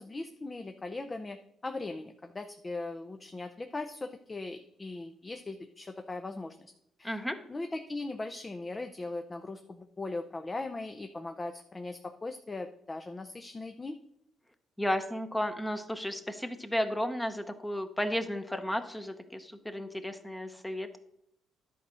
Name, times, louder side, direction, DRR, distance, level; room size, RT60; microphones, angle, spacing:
voice 1, 0.0-6.7 7.0-7.2 7.5-14.0, left 2 dB, 25° left, 6 dB, 0.6 m, -39 dB
voice 2, 7.0-7.4 14.8-21.0, equal, 10° left, 7 dB, 0.9 m, -33 dB
11.0 x 4.2 x 6.2 m, 0.75 s
cardioid pair, 90°, 0 cm